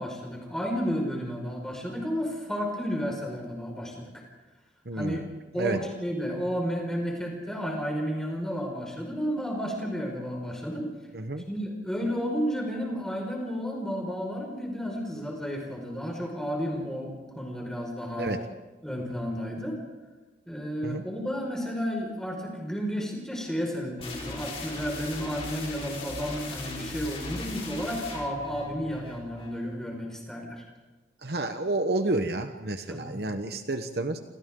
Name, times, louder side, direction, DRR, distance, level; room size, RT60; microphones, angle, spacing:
voice 1, 0.0-4.2 4.9-5.2 5.5-10.9 11.5-18.3 18.8-19.8 20.5-30.6 32.9-33.1, equal, 5° left, 0 dB, 5.3 m, -32 dB
voice 2, 4.9-5.2 5.6-5.8 11.1-11.4 18.2-18.4 20.8-21.0 31.2-34.2, right 2 dB, 60° right, 7 dB, 1.1 m, -30 dB
sound 1, 24.0-29.6, left 2 dB, 30° left, 4.4 m, -39 dB
28.5 x 27.5 x 3.9 m, 1.2 s
head